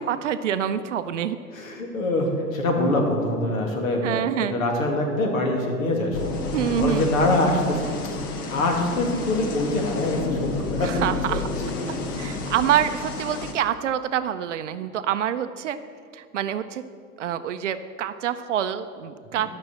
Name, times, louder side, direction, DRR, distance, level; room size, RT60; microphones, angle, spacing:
voice 1, 0.0-1.4 4.0-4.6 6.5-7.1 10.8-11.5 12.2-15.8 16.1-16.8 17.2-19.5, right 10 dB, 50° right, 11 dB, 0.6 m, -26 dB
voice 2, 1.5-6.2 6.8-7.9 8.5-10.9 11.3-11.7, left 1 dB, 60° left, 1 dB, 2.5 m, -24 dB
sound 1, 6.1-13.5, left 3 dB, 15° left, 0.4 m, -30 dB
12.0 x 6.3 x 7.5 m, 2.2 s
figure-of-eight pair, 110°, 46 cm